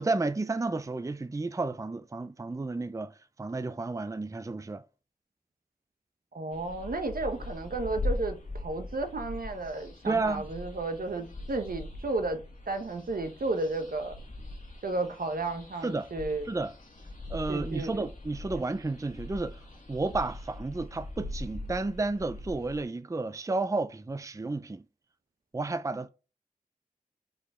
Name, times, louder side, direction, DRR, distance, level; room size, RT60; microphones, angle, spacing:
voice 1, 0.0-4.8 10.1-10.4 15.8-16.1 16.5-16.7 17.3-19.6 19.9-24.8 25.5-26.1, right 3 dB, 20° right, 0.4 m, -32 dB
voice 2, 6.3-14.2 14.8-16.5 17.5-18.0 18.6-18.7, right 2 dB, 85° right, 0.9 m, -33 dB
sound 1, 6.5-22.8, left 1 dB, 65° left, 1.7 m, -41 dB
5.1 x 4.4 x 4.2 m
wide cardioid pair, 55°, 15 cm